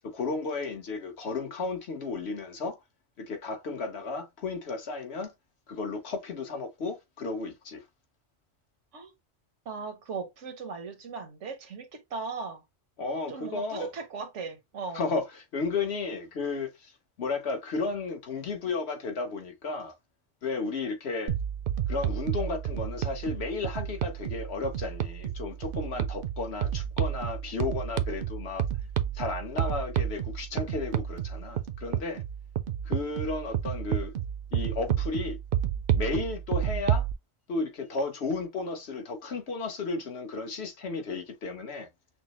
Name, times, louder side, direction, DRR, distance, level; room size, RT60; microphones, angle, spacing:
voice 1, 0.0-2.8 3.2-5.3 5.7-7.8 13.0-13.9 14.9-16.9 17.2-19.9 20.4-21.3 21.9-28.7 29.1-32.2 32.8-34.1 34.5-35.4 35.9-37.1 37.5-41.9, left 3 dB, 65° left, 1.3 m, -33 dB
voice 2, 9.6-12.6 13.3-15.0, right 4 dB, 90° right, 1.4 m, -38 dB
sound 1, 21.3-37.1, right 10 dB, 60° right, 0.7 m, -31 dB
6.0 x 2.0 x 3.0 m
omnidirectional pair, 1.2 m